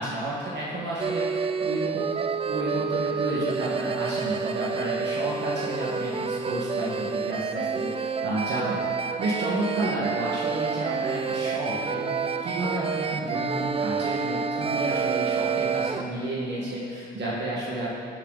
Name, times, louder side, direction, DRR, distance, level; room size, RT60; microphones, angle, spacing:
voice 1, 0.0-2.1 2.5-8.8 9.2-18.0, right 1 dB, 60° right, -7 dB, 1.9 m, -31 dB
sound 1, 1.0-16.0, right 5 dB, 30° right, 0.4 m, -29 dB
12.5 x 6.5 x 4.1 m, 2.4 s
cardioid pair, 90°, 20 cm